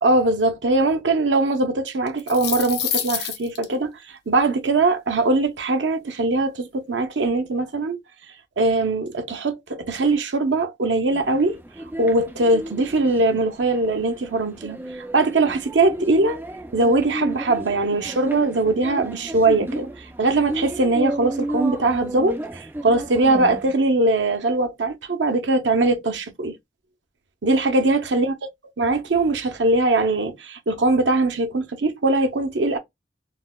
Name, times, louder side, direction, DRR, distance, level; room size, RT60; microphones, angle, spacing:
voice 1, 0.0-8.0 8.6-11.6 12.0-16.4 16.7-26.5 27.4-28.3 28.8-32.8, right 2 dB, 90° right, 0.7 m, -21 dB
sound 1, 2.1-3.6, left 9 dB, 65° left, 0.7 m, -27 dB
sound 2, 11.1-23.7, right 1 dB, 10° right, 0.3 m, -33 dB
3.9 x 2.1 x 2.2 m
head